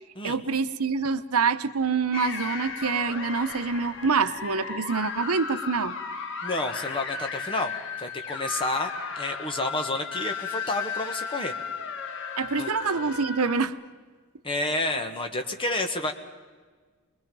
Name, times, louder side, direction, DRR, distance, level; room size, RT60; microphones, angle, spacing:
voice 1, 0.2-6.0 12.4-13.8, right 5 dB, 80° right, 11 dB, 0.8 m, -26 dB
sound 1, 2.1-13.7, left 5 dB, 60° left, 1.5 m, -35 dB
voice 2, 6.4-7.7 8.0-11.5 12.6-12.7 14.4-16.1, left 2 dB, 25° left, 5 dB, 1.5 m, -30 dB
24.0 x 21.5 x 5.4 m, 1.5 s
head